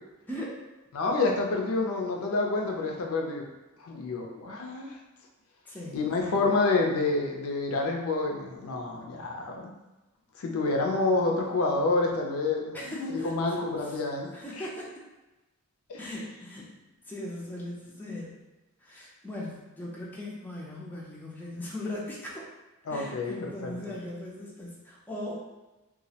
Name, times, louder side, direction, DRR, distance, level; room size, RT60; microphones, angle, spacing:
voice 1, 0.3-0.7 5.7-6.0 12.7-14.0 14.3-15.0 16.0-16.7 17.0-18.4 18.8-22.4 22.9-25.3, left 1 dB, 10° left, -5 dB, 0.4 m, -39 dB
voice 2, 0.9-3.5 3.8-5.0 5.9-9.7 10.4-14.3 14.6-14.7 15.9-16.0 22.9-23.8, left 3 dB, 75° left, 1 dB, 0.4 m, -28 dB
2.3 x 2.0 x 2.7 m, 1.1 s
head